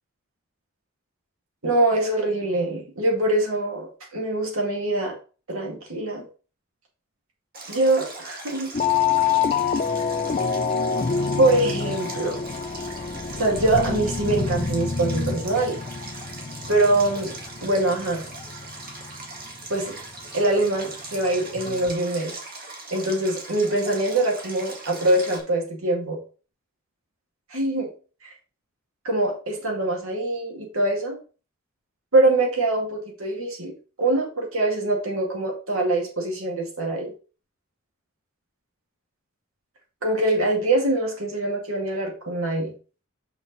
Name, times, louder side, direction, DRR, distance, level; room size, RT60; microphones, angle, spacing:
voice 1, 1.6-5.2 5.5-6.3 7.7-8.7 11.4-12.4 13.4-15.8 16.7-17.3 17.6-18.2 19.7-20.0 20.3-22.3 22.9-26.2 27.5-27.9 28.2-28.3 29.0-31.2 32.1-33.7 34.0-37.1 40.0-42.7, right 2 dB, 65° right, 0 dB, 2.4 m, -23 dB
Stream, 7.5-25.4, right 3 dB, 45° right, 1.8 m, -40 dB
sound 1, 8.7-19.4 20.2-20.3 21.6-21.9, left 6 dB, 35° left, 0.5 m, -27 dB
5.9 x 5.8 x 4.0 m, 0.36 s
head